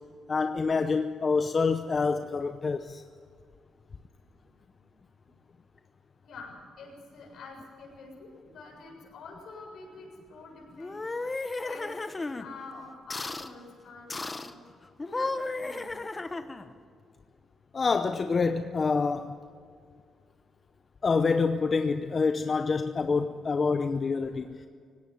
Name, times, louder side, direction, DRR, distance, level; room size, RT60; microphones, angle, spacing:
voice 1, 0.3-3.0 17.7-19.3 21.0-24.7, left 4 dB, 40° left, 9 dB, 0.7 m, -27 dB
voice 2, 6.2-11.3 11.6-11.9 12.4-14.6 15.0-15.9, left 3 dB, 70° left, 0 dB, 7.1 m, -47 dB
sound 1, 10.8-12.5 13.1-13.5 14.1-14.5 15.0-16.7, left 3 dB, 25° left, 1.1 m, -34 dB
18.5 x 17.0 x 9.5 m, 2.1 s
cardioid pair, 80°, 0 cm